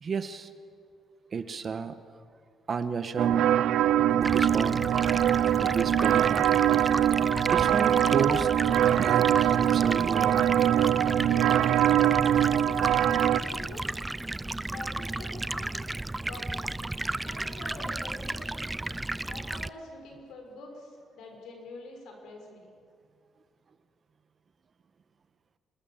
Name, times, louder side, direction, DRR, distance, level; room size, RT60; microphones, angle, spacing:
voice 1, 0.0-0.5 1.3-2.0 2.7-3.5 4.1-4.8 5.6-6.6 7.5-8.5 9.0-10.4 10.8-11.2, right 5 dB, 45° right, 10 dB, 1.4 m, -32 dB
sound 1, 3.2-13.4, right 11 dB, 80° right, 0.5 m, -23 dB
Stream, 4.2-19.7, right 2 dB, 15° right, 0.5 m, -34 dB
voice 2, 13.1-13.9 14.6-15.9 16.2-16.6 17.2-18.7 19.2-22.7, left 2 dB, 80° left, 2 dB, 6.0 m, -45 dB
26.0 x 20.5 x 7.4 m, 2.3 s
cardioid pair, 90°, 0 cm